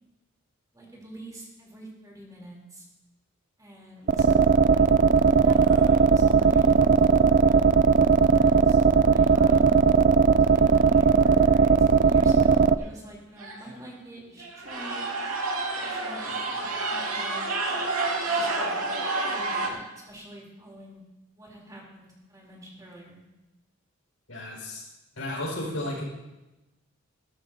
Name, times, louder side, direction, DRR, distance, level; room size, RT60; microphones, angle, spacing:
voice 1, 0.7-2.9 3.6-4.3 5.3-7.6 8.2-9.5 10.4-15.0 15.8-17.5 18.2-18.8 19.2-21.0 21.4-23.2, right 1 dB, 15° right, -3 dB, 3.4 m, -46 dB
High Text Blip, 4.1-12.7, right 5 dB, 40° right, 0.3 m, -18 dB
sound 1, 4.1-4.5 5.0-5.1 5.5-6.0 9.2-9.3 10.5-10.6 10.8-11.1 11.6-11.7 12.4-12.5 12.8-12.9 13.4-13.8 14.4-19.7, right 3 dB, 85° right, 2.3 m, -30 dB
voice 2, 24.3-24.8 25.2-26.0, left 1 dB, 65° left, -4 dB, 5.4 m, -33 dB
16.5 x 14.0 x 2.8 m, 1.0 s
head